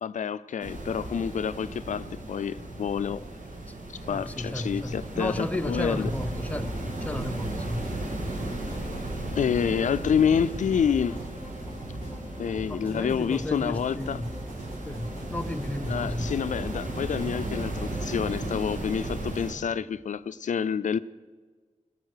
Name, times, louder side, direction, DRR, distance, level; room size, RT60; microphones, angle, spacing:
voice 1, 0.0-3.2 4.1-6.1 9.4-11.2 12.4-14.2 15.9-21.0, left 7 dB, 75° left, 0.4 m, -28 dB
sound 1, 0.6-19.5, right 2 dB, 85° right, 2.1 m, -36 dB
voice 2, 4.1-7.9 12.7-14.3 14.9-16.3, left 1 dB, 10° left, 0.7 m, -33 dB
sound 2, 5.7-18.4, equal, 50° right, 4.7 m, -41 dB
17.5 x 6.9 x 6.5 m
wide cardioid pair, 80°, 13 cm